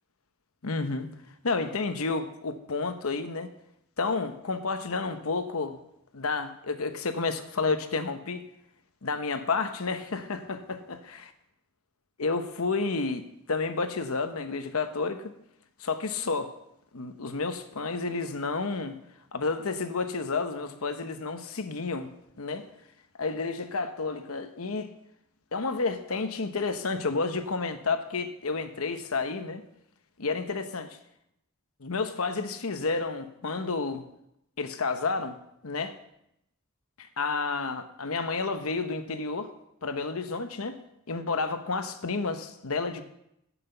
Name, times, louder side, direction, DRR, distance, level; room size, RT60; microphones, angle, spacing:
voice 1, 0.6-1.1 1.4-3.5 4.0-5.8 6.1-8.5 9.0-11.0 12.2-15.3 15.8-16.5 16.9-19.0 19.3-22.1 22.4-22.7 23.2-24.9 25.5-29.6 30.2-31.0 31.8-34.0 34.6-35.4 35.6-36.0 37.0-39.5 39.8-40.8 41.1-43.0, left 4 dB, 75° left, 1.0 m, -30 dB
11.0 x 6.0 x 6.9 m
head